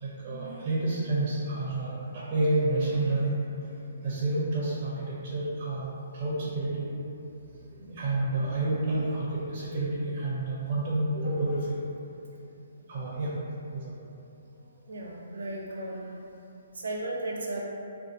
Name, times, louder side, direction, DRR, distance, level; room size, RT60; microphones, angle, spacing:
voice 1, 0.0-3.3 4.0-5.9 6.1-6.8 7.8-11.6 12.9-13.3 13.7-13.9, right 2 dB, 30° right, -7 dB, 0.6 m, -29 dB
voice 2, 14.9-16.2 16.7-17.6, right 2 dB, 85° right, -2 dB, 0.6 m, -35 dB
2.6 x 2.3 x 3.7 m, 2.8 s
hypercardioid pair, 160°, 0 cm